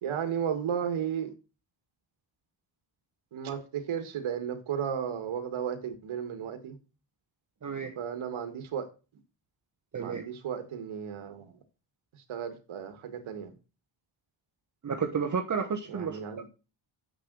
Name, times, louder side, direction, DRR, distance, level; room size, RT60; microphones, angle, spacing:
voice 1, 0.0-1.3 3.3-6.8 8.0-8.9 9.9-11.5 12.3-13.5 15.9-16.5, right 8 dB, 70° right, 1.8 m, -34 dB
voice 2, 7.6-7.9 9.9-10.2 14.8-16.2, right 6 dB, 35° right, 1.2 m, -31 dB
8.0 x 6.6 x 6.1 m
cardioid pair, 95°, 50 cm